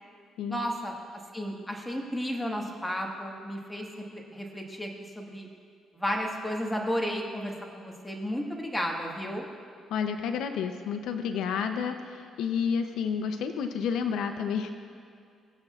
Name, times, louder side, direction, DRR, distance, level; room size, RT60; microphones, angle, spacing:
voice 1, 0.5-0.9 1.3-3.9 4.1-4.9 5.2-5.5 5.9-9.5, equal, 10° left, 0 dB, 1.5 m, -33 dB
voice 2, 9.9-14.8, left 6 dB, 85° left, 7 dB, 0.6 m, -30 dB
20.5 x 7.8 x 2.4 m, 2.4 s
cardioid pair, 90°, 0 cm